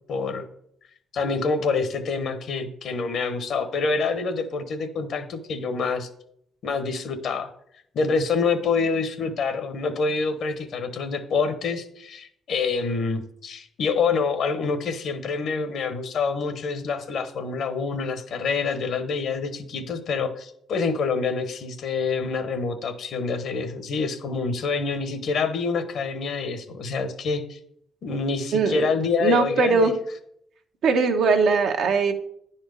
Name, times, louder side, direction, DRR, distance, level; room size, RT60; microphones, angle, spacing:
voice 1, 0.1-0.5 1.1-6.1 6.6-7.5 7.9-27.6 28.0-29.9, left 4 dB, 65° left, 9 dB, 1.1 m, -26 dB
voice 2, 28.5-28.9 29.2-29.9 30.8-32.1, right 4 dB, 70° right, 5 dB, 1.0 m, -20 dB
10.0 x 4.3 x 5.2 m, 0.71 s
cardioid pair, 90°, 0 cm